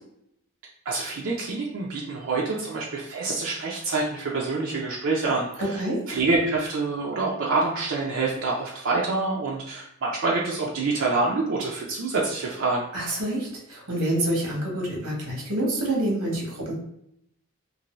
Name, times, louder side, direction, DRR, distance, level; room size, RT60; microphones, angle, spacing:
voice 1, 0.9-5.8 6.1-12.9, right 3 dB, 60° right, -3 dB, 0.5 m, -26 dB
voice 2, 5.6-6.0 12.9-16.7, right 1 dB, 85° right, -3 dB, 1.1 m, -27 dB
2.6 x 2.6 x 3.0 m, 0.77 s
head